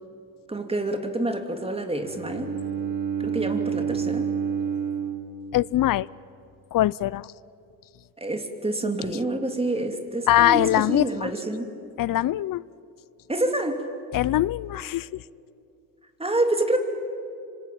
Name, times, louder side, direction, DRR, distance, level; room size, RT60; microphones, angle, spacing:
voice 1, 0.5-2.6 3.2-4.3 8.2-11.8 13.3-13.9 16.2-16.8, right 2 dB, 15° right, 5 dB, 3.0 m, -27 dB
Bowed string instrument, 2.0-6.1, right 7 dB, 65° right, 2.3 m, -29 dB
voice 2, 5.5-6.1 6.7-7.3 10.3-11.3 12.0-12.6 14.1-15.2, left 14 dB, 60° left, 22 dB, 0.6 m, -22 dB
25.5 x 25.5 x 8.7 m, 2.6 s
cardioid pair, 80°, 37 cm